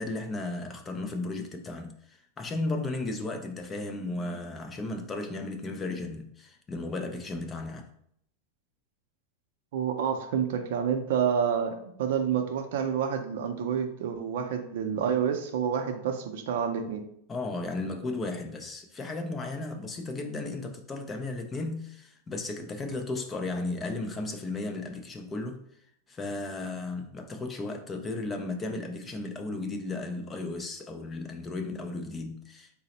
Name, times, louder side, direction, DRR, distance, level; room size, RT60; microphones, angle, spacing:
voice 1, 0.0-7.9 17.3-25.6 26.1-32.7, left 2 dB, 15° left, 0.3 m, -35 dB
voice 2, 9.7-17.0, right 7 dB, 65° right, 0.5 m, -28 dB
3.9 x 2.0 x 4.0 m
supercardioid pair, 160°, 0 cm